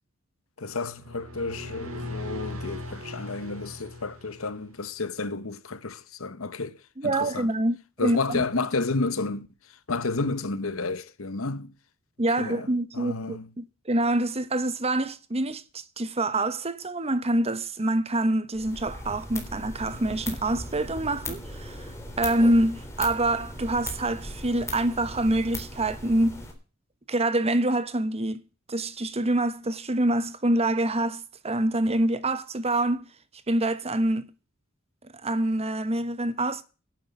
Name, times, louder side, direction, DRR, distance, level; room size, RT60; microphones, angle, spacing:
voice 1, 0.6-6.7 7.0-7.5 8.0-9.5 9.9-11.7 12.4-12.7 12.9-13.5, left 3 dB, 80° left, 1.1 m, -31 dB
sound 1, 0.9-4.8, left 1 dB, 90° right, 3.8 m, -38 dB
voice 2, 7.0-8.5 12.2-21.9 22.2-26.4 27.1-28.4 28.7-33.0 33.5-34.3 35.2-36.6, right 1 dB, 30° right, 1.0 m, -26 dB
sound 2, 18.5-26.5, left 1 dB, 15° left, 3.8 m, -38 dB
11.5 x 7.5 x 9.3 m
head